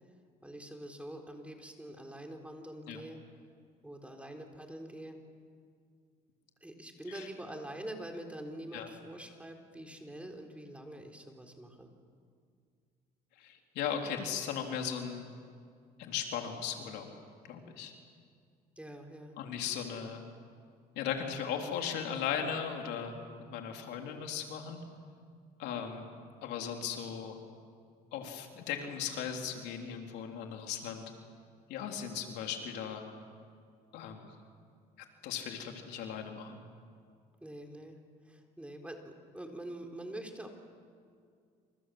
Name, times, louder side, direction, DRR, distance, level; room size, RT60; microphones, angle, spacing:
voice 1, 0.4-3.2 3.8-5.2 6.6-11.9 18.8-19.4 37.4-38.0 38.2-40.5, right 1 dB, 5° right, 3 dB, 4.0 m, -45 dB
voice 2, 13.4-15.3 16.0-17.1 17.5-17.9 19.4-20.2 21.0-23.1 23.4-24.8 25.6-26.1 26.4-27.4 28.1-31.1 31.7-33.0 33.9-34.3 35.0-36.6, left 8 dB, 85° left, 3 dB, 3.6 m, -37 dB
28.0 x 27.5 x 7.8 m, 2.2 s
cardioid pair, 110°, 17 cm